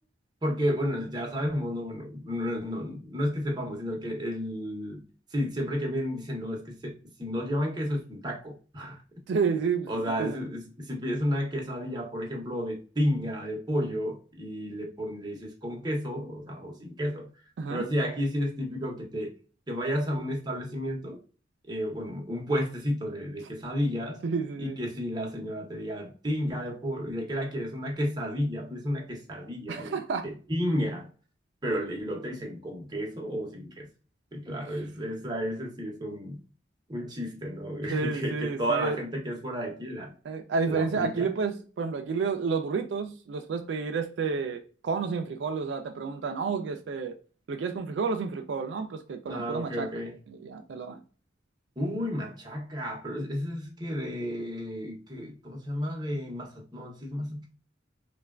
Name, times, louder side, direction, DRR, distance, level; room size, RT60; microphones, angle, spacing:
voice 1, 0.4-5.0 5.3-9.0 9.9-17.3 17.7-19.3 19.7-21.2 21.7-24.2 24.6-30.0 30.2-31.1 31.6-33.9 34.3-36.4 36.9-40.1 40.7-41.3 49.3-50.2 51.8-57.5, equal, 25° right, 0.7 m, -32 dB
voice 2, 9.3-10.4 17.6-17.9 24.2-24.8 29.7-30.3 37.9-39.0 40.3-47.2 47.5-49.9 50.3-51.0, right 5 dB, 75° right, 0.3 m, -30 dB
3.3 x 2.2 x 2.3 m
head